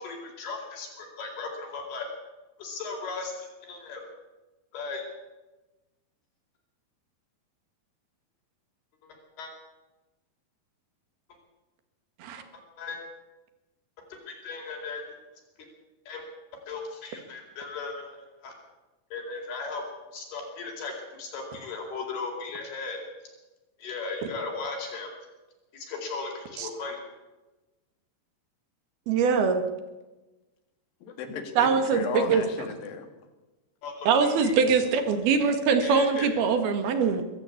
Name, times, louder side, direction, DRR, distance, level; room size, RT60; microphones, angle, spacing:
voice 1, 0.0-2.1 2.6-4.1 4.7-5.0 9.0-9.5 12.5-13.0 14.1-15.0 15.6-15.7 16.1-16.2 16.7-18.5 19.1-19.9 20.1-23.0 23.8-25.1 25.7-27.0 33.8-34.5 35.8-36.3, left 4 dB, 90° left, 1 dB, 6.4 m, -37 dB
voice 2, 29.1-29.6 31.6-32.4 34.1-37.2, right 5 dB, 80° right, 8 dB, 3.8 m, -23 dB
voice 3, 31.0-33.1, left 6 dB, 70° left, 6 dB, 3.8 m, -35 dB
23.0 x 14.0 x 8.6 m, 1.1 s
omnidirectional pair, 4.4 m